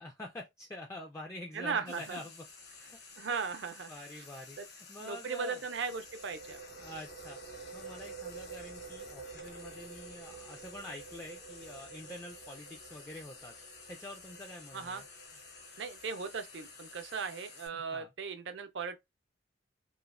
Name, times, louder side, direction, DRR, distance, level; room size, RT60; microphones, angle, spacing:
voice 1, 0.0-3.0 3.9-5.8 6.8-13.5 13.9-15.1 17.7-18.1, left 1 dB, 15° left, 0.3 m, -47 dB
voice 2, 1.5-2.2 3.2-3.9 5.0-6.6 14.7-15.0 15.8-19.0, right 5 dB, 70° right, 0.5 m, -37 dB
Frying (food), 1.9-17.7, left 4 dB, 60° left, 0.8 m, -53 dB
sound 1, 5.7-17.1, right 5 dB, 80° left, 1.5 m, -50 dB
3.0 x 2.0 x 2.4 m
head